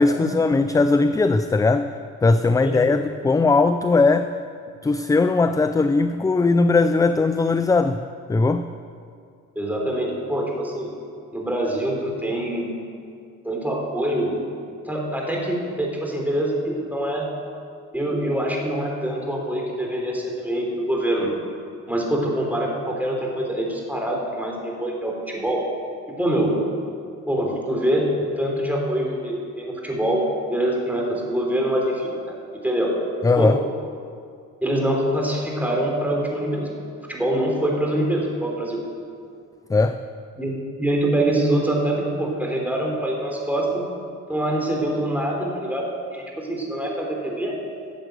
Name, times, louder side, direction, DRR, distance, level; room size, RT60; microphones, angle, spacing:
voice 1, 0.0-1.9 2.2-4.4 4.8-8.0 8.3-8.7 33.2-33.6 39.7-40.0, left 3 dB, 10° left, 10 dB, 0.3 m, -19 dB
voice 2, 9.5-10.9 11.3-12.7 13.4-14.6 14.9-17.3 17.9-21.3 21.9-25.6 26.2-26.5 27.3-32.2 32.6-32.9 33.4-33.5 34.6-36.7 37.1-38.8 40.4-43.8 44.3-45.8 46.1-47.5, right 1 dB, 5° right, -1 dB, 3.4 m, -24 dB
13.5 x 7.8 x 7.7 m, 2.3 s
cardioid pair, 90°, 30 cm